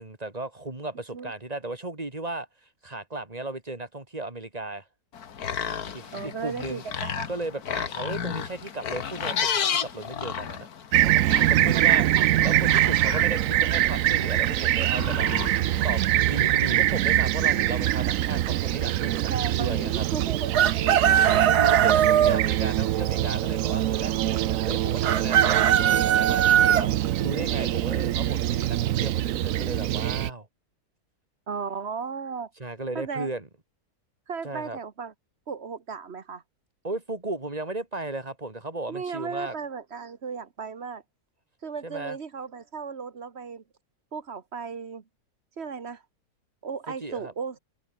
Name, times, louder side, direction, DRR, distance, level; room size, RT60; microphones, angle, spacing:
voice 1, 0.0-2.5 2.8-4.8 5.9-6.8 7.3-10.7 11.0-15.3 15.8-20.0 21.1-30.5 32.6-33.5 34.4-34.8 36.8-39.5 41.8-42.2 47.0-47.3, right 2 dB, 25° right, 3.1 m, -35 dB
sound 1, 5.1-15.9, left 7 dB, 75° left, 1.9 m, -33 dB
voice 2, 6.1-7.3 11.7-12.3 19.3-21.4 31.5-32.5 32.9-33.3 34.3-35.1 35.5-36.4 38.9-41.0 41.6-43.6 44.1-45.0 45.6-46.0 46.6-47.6, right 5 dB, 45° right, 1.6 m, -35 dB
Fixed-wing aircraft airplane, 10.9-30.3, right 13 dB, 65° right, 1.0 m, -24 dB
Chicken rooster, 20.5-22.4 25.0-26.8, right 10 dB, 85° right, 1.6 m, -20 dB
omnidirectional pair, 1.6 m